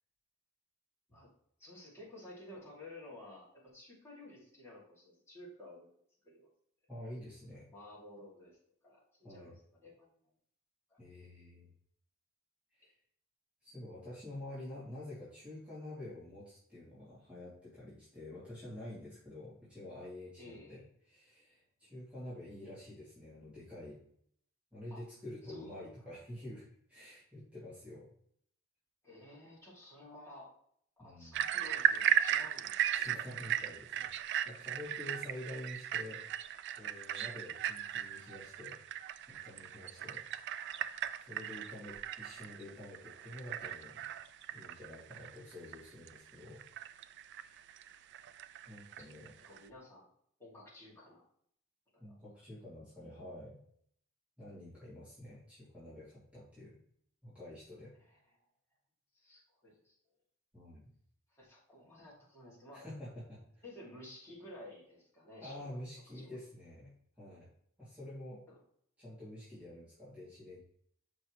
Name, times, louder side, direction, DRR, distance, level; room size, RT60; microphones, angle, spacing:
voice 1, 1.6-5.9 6.2-6.5 7.7-8.6 8.8-10.2 10.9-11.0 12.8-12.9 20.4-20.8 21.8-21.9 24.9-25.0 25.4-25.9 29.0-30.5 31.0-33.1 40.0-40.1 49.5-50.1 50.4-51.2 51.9-52.2 58.1-58.2 59.1-60.0 61.3-62.8 63.6-65.9 66.1-66.4 68.5-68.6, left 1 dB, 10° left, -6 dB, 2.5 m, -53 dB
voice 2, 6.9-7.7 9.2-9.6 11.0-11.7 12.7-12.9 13.6-24.0 24.7-28.1 31.0-31.5 32.9-36.2 36.8-38.8 39.3-40.2 41.3-44.1 44.5-46.6 47.3-47.6 48.7-49.3 52.0-53.6 54.4-56.8 57.2-57.9 60.5-60.9 62.7-63.6 65.4-67.5 67.8-68.4 69.0-70.6, left 1 dB, 5° right, -12 dB, 2.6 m, -48 dB
sound 1, 31.3-49.7, right 10 dB, 55° right, 0.3 m, -37 dB
7.0 x 5.3 x 3.2 m, 0.65 s
head